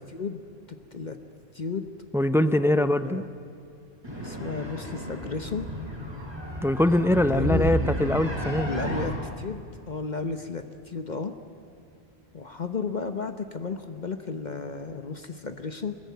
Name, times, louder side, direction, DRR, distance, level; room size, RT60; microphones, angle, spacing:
voice 1, 0.1-0.4 0.9-1.2 1.5-1.9 2.3-3.3 4.2-5.7 7.1-7.8 8.7-11.3 12.3-15.9, left 4 dB, 45° left, 8 dB, 1.1 m, -33 dB
voice 2, 2.1-3.2 6.6-8.7, left 1 dB, 5° right, 12 dB, 0.3 m, -23 dB
sound 1, 4.0-9.0, equal, 20° right, 5.7 m, -32 dB
23.0 x 20.0 x 9.5 m, 2.5 s
omnidirectional pair, 1.2 m